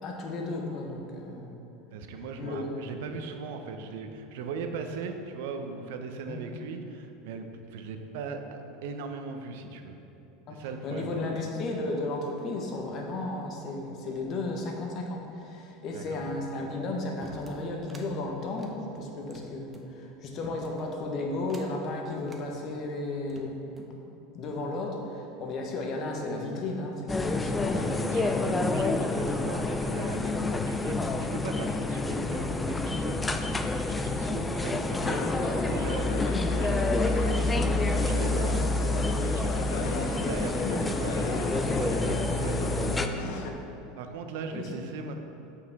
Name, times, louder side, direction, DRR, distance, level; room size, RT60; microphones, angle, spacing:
voice 1, 0.0-1.5 2.4-2.7 6.3-6.4 10.5-23.5 24.3-27.8 40.6-40.7 43.2-43.3 44.5-44.7, left 2 dB, 45° left, 1 dB, 1.1 m, -34 dB
voice 2, 1.9-10.0 10.5-11.4 15.9-16.3 27.7-33.4 33.8-38.8 39.2-43.4 44.0-45.1, right 4 dB, 75° right, 6 dB, 0.6 m, -39 dB
sound 1, 17.2-18.1 18.5-19.9 20.4-20.9 21.4-21.8 22.2-22.5 23.1-24.0, right 2 dB, 20° right, 0.7 m, -49 dB
sound 2, 27.1-43.1, left 2 dB, 15° left, 0.3 m, -28 dB
sound 3, 35.0-43.5, left 4 dB, 75° left, 0.6 m, -37 dB
8.1 x 4.8 x 3.5 m, 2.9 s
supercardioid pair, 125°, 0 cm